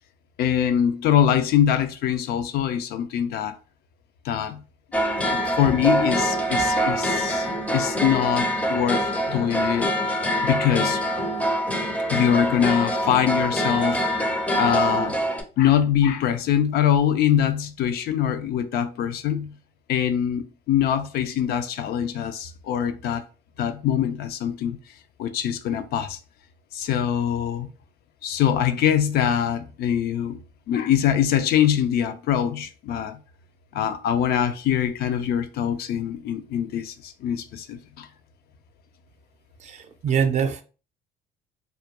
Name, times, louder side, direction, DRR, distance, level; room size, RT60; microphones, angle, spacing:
voice 1, 0.4-3.5 4.2-4.6 5.3-7.5 7.7-10.1 10.4-11.0 12.1-14.1 14.6-15.2 15.6-19.6 19.9-23.2 23.6-24.8 25.2-26.2 26.7-27.7 28.2-30.4 30.7-33.2 33.7-38.1, left 9 dB, 65° left, 0.4 m, -23 dB
sound 1, 4.9-15.4, equal, 10° left, 0.5 m, -24 dB
voice 2, 39.6-40.6, right 7 dB, 45° right, 0.5 m, -24 dB
2.3 x 2.2 x 2.8 m
cardioid pair, 110°, 17 cm